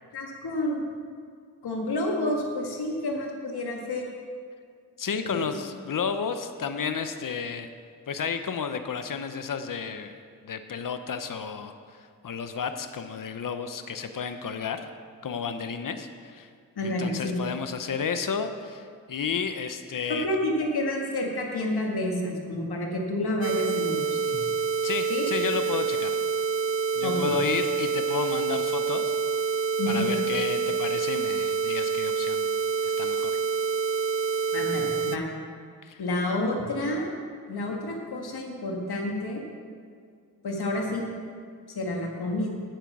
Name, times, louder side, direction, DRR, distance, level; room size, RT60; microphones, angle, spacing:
voice 1, 0.1-0.8 1.6-4.1 5.2-5.5 16.8-17.4 20.2-24.5 25.1-25.3 27.0-27.3 29.8-30.1 34.5-35.3 36.0-37.1 37.5-39.4 40.4-41.1 41.7-42.6, left 1 dB, 90° left, 0 dB, 1.8 m, -29 dB
voice 2, 5.0-7.7 8.1-10.2 10.4-14.9 15.2-16.5 16.8-20.3 24.8-26.2 26.9-29.2 29.9-32.5 32.8-33.4 35.8-36.0, left 6 dB, 60° left, 8 dB, 0.8 m, -32 dB
sound 1, 23.4-35.2, right 5 dB, 40° right, 0.4 m, -27 dB
9.1 x 9.0 x 6.2 m, 2.2 s
cardioid pair, 55°, 37 cm